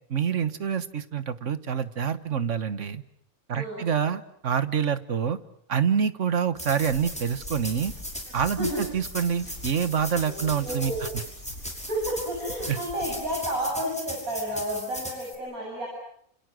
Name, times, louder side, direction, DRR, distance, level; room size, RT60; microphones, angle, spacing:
voice 1, 0.1-3.0 3.5-5.4 5.7-7.9 8.3-10.9 12.7-12.8, right 7 dB, 60° right, 12 dB, 1.6 m, -26 dB
voice 2, 3.5-3.9 8.6-8.8 10.2-11.1 11.8-15.9, equal, 80° right, -3 dB, 8.5 m, -31 dB
sound 1, 6.6-15.4, equal, 5° left, 6.0 m, -38 dB
sound 2, 6.9-13.5, left 1 dB, 55° left, 7.5 m, -45 dB
29.5 x 28.0 x 6.3 m, 0.66 s
omnidirectional pair, 1.5 m